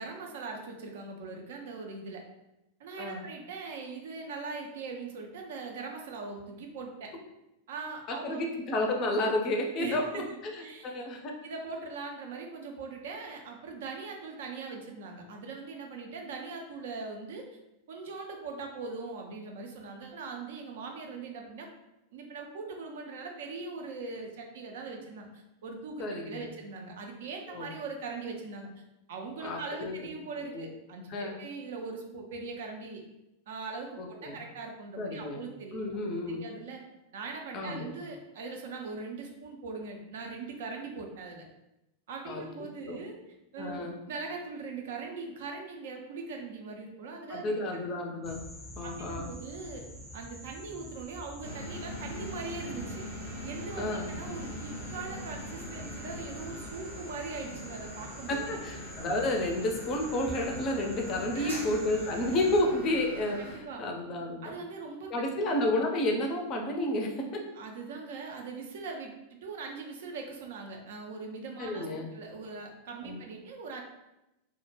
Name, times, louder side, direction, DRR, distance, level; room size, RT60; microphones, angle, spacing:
voice 1, 0.0-2.2 2.8-7.1 7.7-8.4 9.8-10.2 10.6-10.9 11.4-17.5 17.9-21.7 22.1-28.7 29.1-33.0 33.5-35.9 36.3-36.8 37.1-41.5 42.1-43.2 43.5-47.8 48.8-49.8 50.1-53.0 53.4-58.6 61.3-61.7 63.4-63.8 64.4-65.1 67.5-71.9 72.1-73.8, right 4 dB, 55° right, 3 dB, 0.4 m, -41 dB
voice 2, 8.1-11.3 26.0-26.5 27.5-27.7 29.4-29.9 30.5-30.7 31.1-31.4 34.0-34.4 35.0-35.4 35.7-36.4 37.5-37.9 42.3-42.4 42.9-43.0 43.6-43.9 47.3-48.4 48.8-49.3 53.8-54.1 58.3-64.6 65.1-67.4 71.6-72.1 73.0-73.2, left 1 dB, 35° left, 2 dB, 0.4 m, -31 dB
sound 1, 48.2-62.6, equal, 10° right, 0.6 m, -46 dB
sound 2, 51.4-63.5, equal, 85° right, 1.0 m, -42 dB
2.1 x 2.0 x 3.1 m, 0.92 s
figure-of-eight pair, 90°, 0 cm